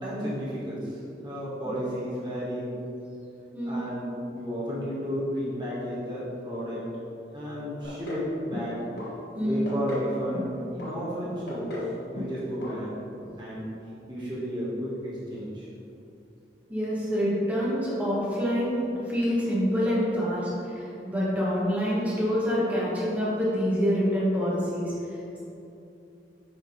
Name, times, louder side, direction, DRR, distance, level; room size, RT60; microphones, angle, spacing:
voice 1, 0.0-2.7 3.6-6.8 7.3-8.8 9.4-11.9 12.1-12.9 13.2-13.7 14.1-15.7, equal, 25° right, -8 dB, 1.4 m, -33 dB
sound 1, 7.8-8.3 8.5-9.1 9.4-10.1 10.3-10.9 11.2-11.9 12.2-12.4 12.6-12.7 13.1-13.2, left 2 dB, 75° left, 1.3 m, -35 dB
voice 2, 9.3-9.7 16.7-24.9, equal, 10° right, -8 dB, 1.5 m, -26 dB
6.8 x 3.8 x 5.0 m, 2.8 s
head